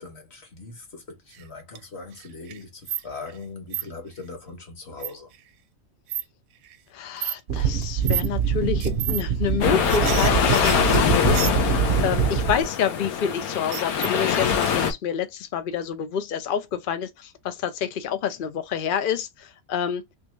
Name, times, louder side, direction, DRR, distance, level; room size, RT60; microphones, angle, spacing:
voice 1, 0.0-5.3, left 3 dB, 50° left, 1.5 m, -40 dB
sound 1, 1.3-1.8 2.1-3.4 3.7-3.8 5.0-5.4 6.1-6.2 6.6-6.8 7.2-7.4 8.0-8.3 8.8-9.2 9.5-11.9 13.4-14.3 14.6-14.7, right 12 dB, 80° right, 1.0 m, -31 dB
voice 2, 6.9-11.5 12.0-20.0, left 8 dB, 65° left, 0.5 m, -28 dB
sound 2, 7.5-12.6, right 8 dB, 55° right, 0.8 m, -24 dB
sound 3, 9.6-14.9, left 8 dB, 85° left, 1.3 m, -23 dB
3.4 x 3.0 x 3.1 m
omnidirectional pair, 1.5 m